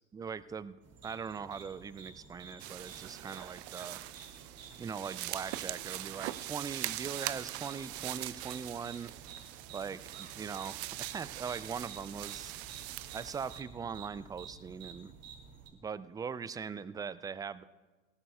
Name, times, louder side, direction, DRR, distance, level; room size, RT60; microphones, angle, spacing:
voice 1, 0.1-0.8 1.0-4.0 4.8-9.1 9.7-12.5 13.1-15.2 15.7-17.6, right 6 dB, 10° right, 17 dB, 0.3 m, -41 dB
sound 1, 0.8-15.7, right 6 dB, 40° right, 2.6 m, -52 dB
sound 2, 2.6-13.6, right 17 dB, 60° right, 0.7 m, -42 dB
19.5 x 17.5 x 2.3 m, 1.3 s
figure-of-eight pair, 75°, 37 cm